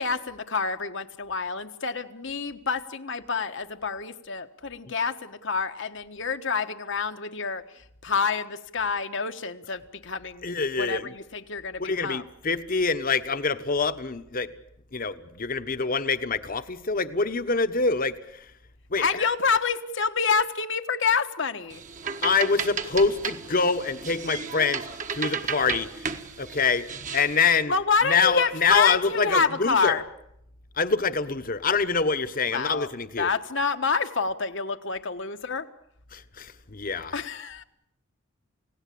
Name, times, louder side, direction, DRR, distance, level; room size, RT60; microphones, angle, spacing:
voice 1, 0.0-12.2 19.0-21.8 27.7-30.0 32.5-32.9 33.2-35.7 37.1-37.6, left 5 dB, 65° left, 7 dB, 1.4 m, -27 dB
voice 2, 10.4-11.2 11.8-14.5 14.9-18.5 18.9-19.2 22.2-26.9 27.1-27.7 28.0-30.0 30.8-33.3 36.1-37.2, left 4 dB, 45° left, 11 dB, 1.2 m, -26 dB
sound 1, 21.7-27.4, right 6 dB, 40° right, 1.5 m, -34 dB
29.5 x 17.5 x 8.6 m, 0.78 s
head